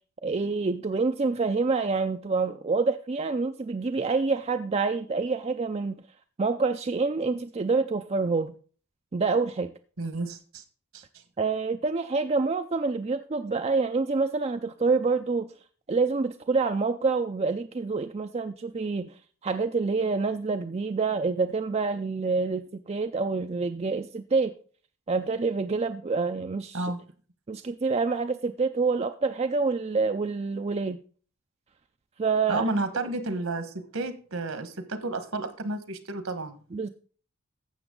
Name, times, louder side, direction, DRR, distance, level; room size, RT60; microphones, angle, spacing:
voice 1, 0.2-6.0 6.4-8.5 9.1-9.7 11.4-15.5 15.9-19.2 19.4-24.5 25.1-26.9 27.5-31.0 32.2-33.1 36.7-36.9, right 4 dB, 30° right, 0.4 m, -27 dB
voice 2, 10.0-10.6 10.9-11.0 26.7-27.0 32.5-36.6, right 2 dB, 70° right, 1.4 m, -31 dB
12.0 x 7.8 x 3.8 m
head